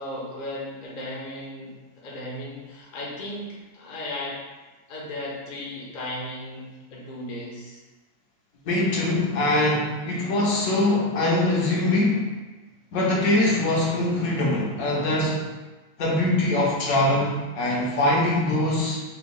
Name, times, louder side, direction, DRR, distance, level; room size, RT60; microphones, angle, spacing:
voice 1, 0.0-4.4 4.9-7.8, left 1 dB, 45° left, -4 dB, 0.6 m, -36 dB
voice 2, 8.6-12.2 12.9-15.4 16.0-19.0, left 1 dB, 70° left, -3 dB, 1.1 m, -22 dB
3.4 x 2.2 x 3.7 m, 1.2 s
omnidirectional pair, 1.6 m